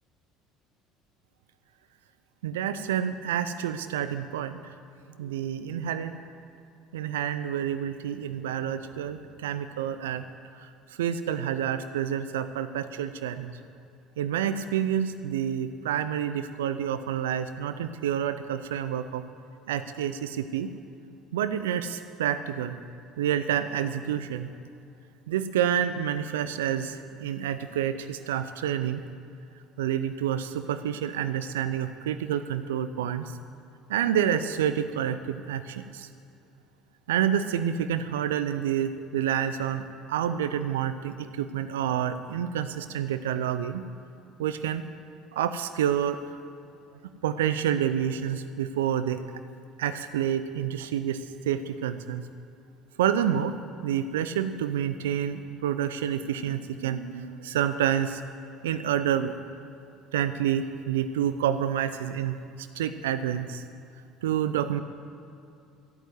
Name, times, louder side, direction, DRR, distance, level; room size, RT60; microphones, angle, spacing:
voice 1, 2.4-4.6 5.2-6.2 6.9-10.2 11.0-13.5 14.2-19.2 19.7-20.7 21.3-22.8 23.2-24.5 25.3-29.0 29.8-33.3 33.9-36.1 37.1-39.8 40.1-43.9 44.4-44.8 45.3-46.2 47.2-49.2 49.8-52.2 53.0-53.5 53.8-58.2 58.6-59.3 60.1-62.3 62.8-63.6 64.2-64.8, right 9 dB, 80° right, 11 dB, 0.5 m, -28 dB
13.5 x 9.0 x 7.9 m, 2.5 s
hypercardioid pair, 65°, 0 cm